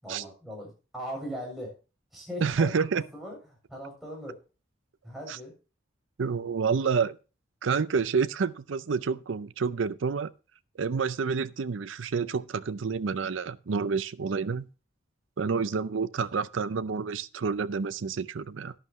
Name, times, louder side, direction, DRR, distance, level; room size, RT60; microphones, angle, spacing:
voice 1, 0.0-1.8 2.1-3.4 3.7-4.3 5.0-5.5, equal, ahead, 7.1 m, -39 dB
voice 2, 2.4-3.0 5.3-5.4 6.2-7.2 7.6-10.3 10.8-14.7 15.4-18.7, right 5 dB, 75° right, 0.5 m, -28 dB
11.5 x 11.5 x 3.1 m
head